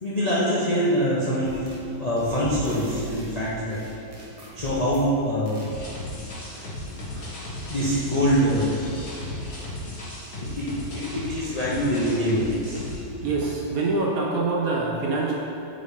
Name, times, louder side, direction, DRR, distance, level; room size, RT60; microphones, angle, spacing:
voice 1, 0.0-1.7 2.0-3.8 4.5-5.6 6.5-7.3 7.7-8.8 10.4-12.8, equal, 75° left, -8 dB, 0.3 m, -25 dB
sound 1, 1.4-1.9 2.2-5.1 5.5-5.7, right 1 dB, 45° right, 0.4 m, -40 dB
sound 2, 5.6-13.0, left 1 dB, 45° left, 1.6 m, -35 dB
voice 2, 13.2-15.3, right 3 dB, 70° right, -2 dB, 0.8 m, -25 dB
8.7 x 3.9 x 3.6 m, 2.7 s
omnidirectional pair, 2.2 m